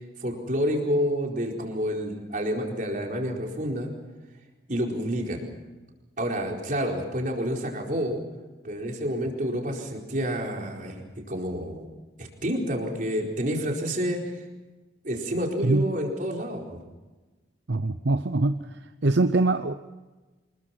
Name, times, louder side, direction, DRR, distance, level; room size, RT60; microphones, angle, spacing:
voice 1, 0.2-3.9 4.7-5.4 6.2-8.2 8.6-11.0 11.3-11.9 12.2-14.4 15.0-16.8, equal, 45° right, 0 dB, 4.5 m, -29 dB
voice 2, 17.7-19.7, right 2 dB, 70° right, 9 dB, 0.8 m, -24 dB
26.5 x 21.5 x 6.0 m, 1.2 s
head